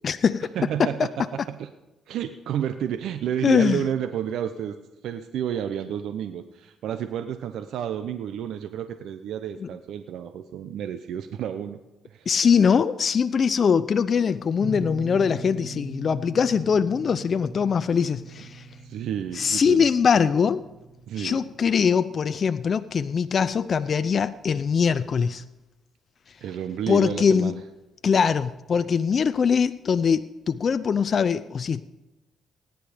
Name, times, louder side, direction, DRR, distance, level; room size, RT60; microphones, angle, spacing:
voice 1, 0.0-0.5 0.8-0.9 3.4-3.8 9.6-9.7 12.3-18.6 19.3-20.6 21.2-25.4 26.9-27.5 28.0-31.8, left 6 dB, 45° left, 13 dB, 0.5 m, -22 dB
voice 2, 0.5-1.7 2.1-4.8 5.0-11.8 12.1-12.3 18.8-19.9 21.1-21.4 26.4-27.6, right 9 dB, 80° right, 9 dB, 0.7 m, -30 dB
sound 1, 14.6-23.3, right 2 dB, 20° right, 2.4 m, -40 dB
17.0 x 10.0 x 5.1 m, 1.0 s
cardioid pair, 90°, 0 cm